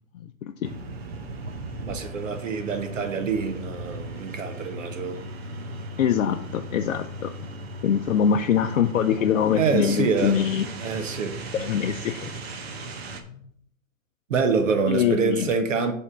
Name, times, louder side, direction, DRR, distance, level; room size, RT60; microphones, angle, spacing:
sound 1, 0.6-13.2, right 2 dB, 50° right, 1.0 m, -37 dB
voice 1, 1.9-5.2 9.6-10.4 10.8-11.4 14.3-15.9, right 5 dB, 65° right, 1.2 m, -26 dB
voice 2, 6.0-7.3 7.8-10.7 11.5-12.3 13.3-13.4 14.9-15.5, left 8 dB, 70° left, 0.6 m, -23 dB
7.0 x 3.6 x 6.0 m
hypercardioid pair, 175°, 40 cm